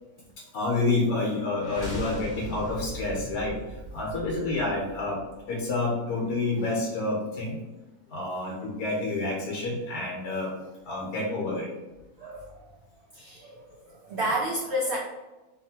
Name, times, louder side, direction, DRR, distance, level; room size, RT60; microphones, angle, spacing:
voice 1, 0.5-3.6 3.9-5.2 5.5-7.6 8.1-10.5 10.9-11.7, left 2 dB, 80° left, -2 dB, 1.1 m, -28 dB
sound 1, 1.5-5.5, equal, 50° left, 0.8 m, -39 dB
voice 2, 12.2-12.5 13.1-15.0, equal, 85° right, -4 dB, 0.5 m, -31 dB
2.8 x 2.3 x 2.7 m, 1.1 s
omnidirectional pair, 1.7 m